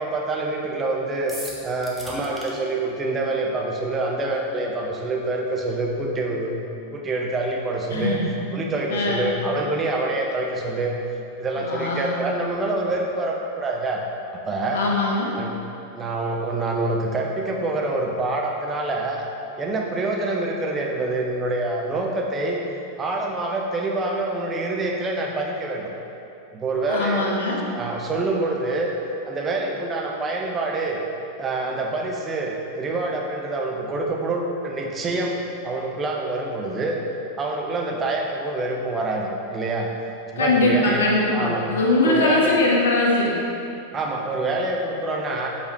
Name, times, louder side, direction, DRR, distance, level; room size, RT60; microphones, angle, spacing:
voice 1, 0.0-1.3 1.6-8.2 8.5-10.9 11.4-14.0 14.5-14.8 15.4-15.5 15.9-19.2 19.6-22.6 23.0-25.9 26.5-27.3 27.7-28.9 29.3-31.0 31.4-35.4 35.6-37.0 37.4-39.9 40.3-41.0 41.3-41.6 42.0-42.5 43.9-45.5, right 2 dB, 20° right, 0 dB, 0.8 m, -26 dB
sound 1, 1.3-2.5, right 1 dB, 5° right, 1.0 m, -37 dB
voice 2, 7.9-8.3 8.9-9.3 11.6-12.2 14.7-15.3 26.9-27.6 40.4-43.4, left 2 dB, 65° left, -3 dB, 1.0 m, -21 dB
6.8 x 5.0 x 3.1 m, 2.8 s
figure-of-eight pair, 90°, 0 cm